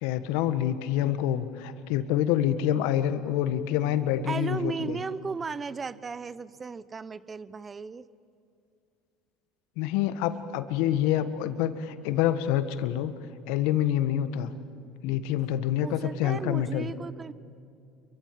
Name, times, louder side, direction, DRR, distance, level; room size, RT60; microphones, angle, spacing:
voice 1, 0.0-5.0 9.8-13.1 13.5-14.5 15.0-16.9, left 11 dB, 70° left, 11 dB, 1.4 m, -27 dB
voice 2, 4.3-8.0 15.8-17.3, right 5 dB, 30° right, 17 dB, 0.9 m, -35 dB
29.5 x 23.5 x 7.7 m, 2.4 s
hypercardioid pair, 75°, 0 cm